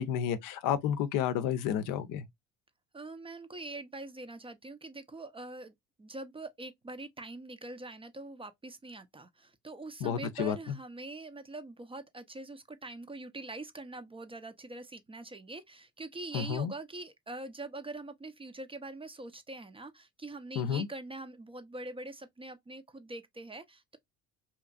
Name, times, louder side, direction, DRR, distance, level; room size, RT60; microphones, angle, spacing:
voice 1, 0.0-2.2 10.0-10.6 16.3-16.7 20.6-20.9, left 9 dB, 70° left, 0.6 m, -31 dB
voice 2, 2.9-5.7 6.0-24.0, right 2 dB, 15° right, 0.5 m, -44 dB
2.9 x 2.4 x 2.3 m
supercardioid pair, 75°, 34 cm